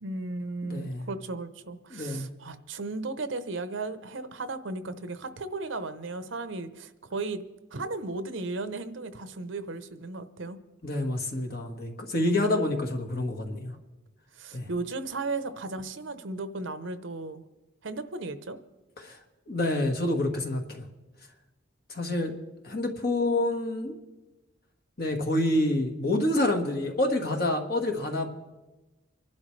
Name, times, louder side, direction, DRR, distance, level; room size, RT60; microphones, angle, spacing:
voice 1, 0.0-7.4 7.7-10.6 12.2-12.7 14.4-17.4 17.8-18.6, right 3 dB, 75° right, 11 dB, 0.8 m, -35 dB
voice 2, 0.6-1.1 1.9-2.3 10.8-13.7 14.5-14.7 19.0-19.2 19.5-20.9 21.9-22.3 22.6-23.9 25.0-28.3, left 1 dB, 50° left, 3 dB, 1.6 m, -28 dB
25.5 x 11.5 x 3.3 m, 1.1 s
head